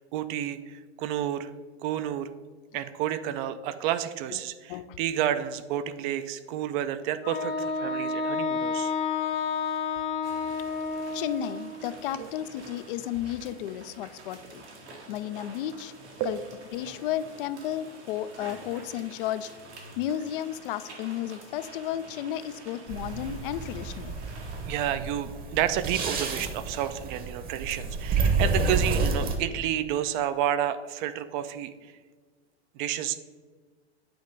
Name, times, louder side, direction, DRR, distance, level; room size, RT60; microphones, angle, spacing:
voice 1, 0.0-1.5 1.8-2.3 2.7-8.9 12.2-12.3 16.2-16.4 24.7-31.7 32.8-33.2, right 11 dB, 45° right, 12 dB, 0.5 m, -30 dB
Wind instrument woodwind instrument, 7.2-11.9, left 4 dB, 35° left, 0.9 m, -30 dB
sound 1, 10.2-24.9, right 2 dB, 90° right, 1.8 m, -48 dB
voice 2, 11.1-14.6 15.1-15.9 16.2-16.4 16.7-19.5 20.0-24.1, left 11 dB, 55° left, 14 dB, 0.4 m, -33 dB
sound 2, 22.9-29.4, right 4 dB, 25° right, 0.9 m, -29 dB
8.7 x 3.1 x 5.2 m, 1.5 s
hypercardioid pair, 110°, 33 cm